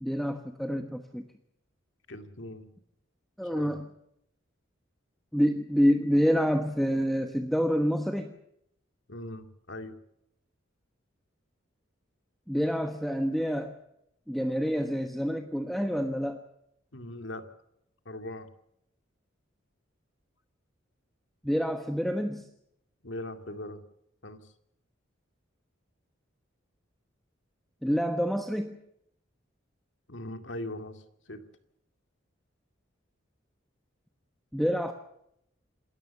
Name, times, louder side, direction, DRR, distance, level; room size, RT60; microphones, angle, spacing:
voice 1, 0.0-1.2 3.4-3.9 5.3-8.3 12.5-13.7 14.3-16.4 21.4-22.5 27.8-28.8 34.5-34.9, equal, ahead, 6 dB, 1.2 m, -27 dB
voice 2, 2.1-2.7 3.5-3.8 9.1-10.0 16.9-17.5 18.1-18.5 23.0-23.8 24.2-24.4 30.1-31.4, left 1 dB, 70° left, 8 dB, 2.3 m, -40 dB
27.0 x 14.0 x 7.1 m, 0.76 s
head